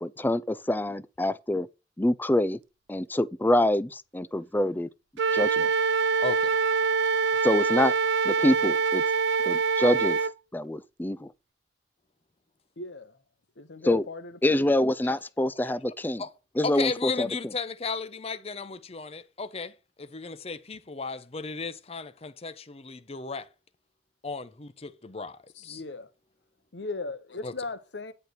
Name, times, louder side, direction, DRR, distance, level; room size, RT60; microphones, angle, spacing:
voice 1, 0.0-1.7 2.0-2.6 2.9-4.9 5.3-5.7 7.4-7.9 8.2-9.0 9.4-10.2 10.5-11.3 13.8-14.1 14.4-16.2 16.6-17.3, left 1 dB, 10° left, 0.4 m, -25 dB
Wind instrument woodwind instrument, 5.2-10.3, right 5 dB, 75° right, 0.4 m, -24 dB
voice 2, 6.2-6.6 15.6-15.7 16.2-16.3 16.6-23.5 24.2-25.8 27.4-27.5, left 4 dB, 35° left, 0.7 m, -35 dB
voice 3, 12.8-13.2 13.6-15.2 25.5-26.1 26.7-28.1, left 3 dB, 75° left, 1.0 m, -38 dB
9.8 x 4.5 x 6.6 m
head